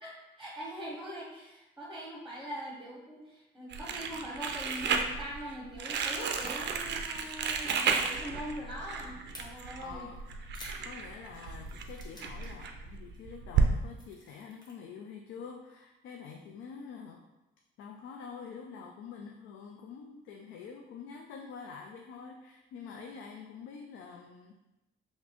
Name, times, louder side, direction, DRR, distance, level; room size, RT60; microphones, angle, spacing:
voice 1, 0.0-10.1, equal, ahead, -5 dB, 0.9 m, -42 dB
Crumpling crinkling, 3.7-13.7, right 5 dB, 60° right, 0.4 m, -33 dB
sound 1, 9.3-9.4 10.2-12.6 12.9-13.2 13.6-14.7, left 1 dB, 20° left, 1.1 m, -52 dB
voice 2, 9.8-10.4 10.8-17.2 17.8-24.6, left 6 dB, 80° left, 2 dB, 0.4 m, -46 dB
3.9 x 2.6 x 2.9 m, 0.98 s
cardioid pair, 90°, 20 cm